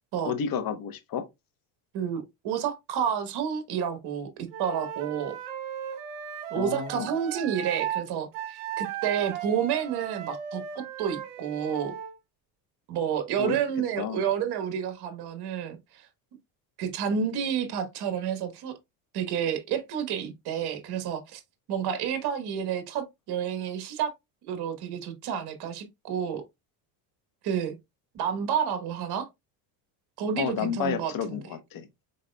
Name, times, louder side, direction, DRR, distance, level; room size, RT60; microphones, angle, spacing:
voice 1, 0.2-1.2 6.5-7.1 13.4-13.6 14.0-14.2 30.4-32.0, left 8 dB, 45° left, 1.0 m, -31 dB
voice 2, 1.9-4.3 4.6-5.4 6.5-11.9 12.9-16.1 16.8-18.7 19.1-21.4 21.7-24.1 24.4-26.4 27.4-27.8 28.1-29.3 30.2-31.4, right 8 dB, 55° right, 1.2 m, -30 dB
Wind instrument woodwind instrument, 4.5-8.0 8.3-12.1, right 10 dB, 75° right, 1.1 m, -36 dB
5.4 x 4.0 x 2.2 m
supercardioid pair, 105°, 47 cm